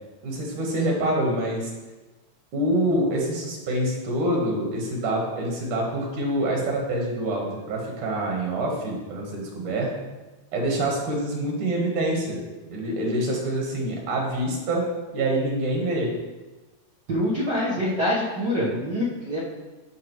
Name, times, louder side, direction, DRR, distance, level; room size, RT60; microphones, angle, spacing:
voice 1, 0.2-1.7 2.5-9.9 10.5-12.4 12.7-14.8 15.1-16.1, right 1 dB, 70° right, -1 dB, 2.8 m, -26 dB
voice 2, 17.1-19.4, left 1 dB, 85° right, -7 dB, 0.9 m, -25 dB
11.5 x 4.8 x 3.1 m, 1.2 s
omnidirectional pair, 3.8 m